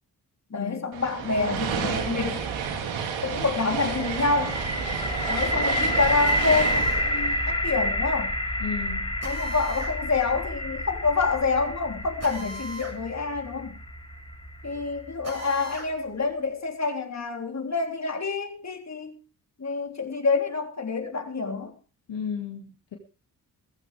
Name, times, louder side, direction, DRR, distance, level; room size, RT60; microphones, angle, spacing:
voice 1, 0.5-2.4 3.2-4.6 5.3-8.3 9.2-13.8 14.6-19.2 19.6-21.7, left 4 dB, 35° left, 4 dB, 3.5 m, -27 dB
sound 1, 0.9-8.3, right 6 dB, 80° right, 2.8 m, -31 dB
sound 2, 3.9-15.8, equal, 10° left, 2.1 m, -29 dB
Drill, 6.3-7.1 9.2-10.0 12.2-13.0 13.3-13.4 15.2-15.9, right 2 dB, 35° right, 6.9 m, -39 dB
voice 2, 8.6-9.1 22.1-23.0, left 6 dB, 65° left, 3 dB, 2.5 m, -34 dB
16.5 x 15.0 x 3.5 m, 0.32 s
hypercardioid pair, 40°, 46 cm